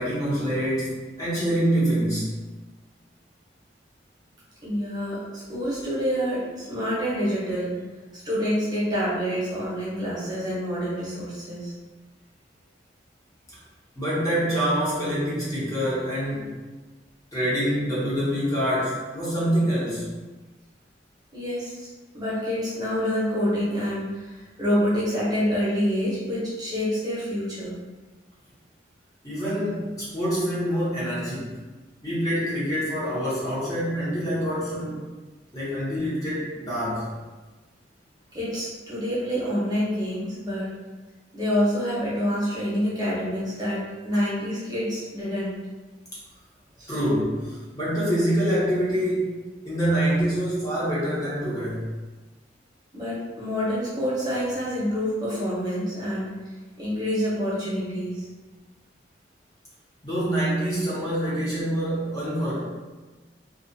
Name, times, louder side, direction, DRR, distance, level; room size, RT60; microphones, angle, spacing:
voice 1, 0.0-2.3 14.0-16.5 17.3-20.1 29.2-31.6 32.0-35.0 35.5-37.1 46.9-49.4 49.6-51.9 60.0-62.6, equal, 20° left, -10 dB, 0.8 m, -26 dB
voice 2, 4.6-7.7 8.2-11.7 21.3-21.9 22.1-27.8 38.3-40.7 41.3-45.6 46.8-46.9 52.9-56.3 56.8-58.3, equal, 20° right, -9 dB, 0.8 m, -27 dB
2.3 x 2.3 x 2.6 m, 1.2 s
head